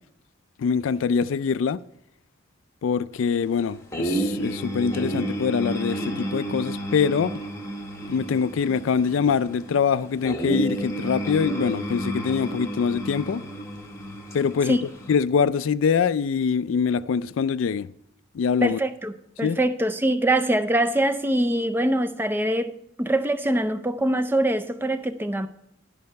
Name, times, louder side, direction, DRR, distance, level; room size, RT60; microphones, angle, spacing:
voice 1, 0.6-1.8 2.8-7.3 8.1-13.4 14.3-14.8 15.1-17.9 18.3-18.8 19.4-19.6, left 6 dB, 75° left, 0.3 m, -24 dB
sound 1, 3.9-15.1, right 1 dB, 15° left, 1.0 m, -31 dB
voice 2, 18.6-19.1 19.4-25.5, right 1 dB, 10° right, 0.4 m, -23 dB
11.5 x 5.5 x 5.3 m
head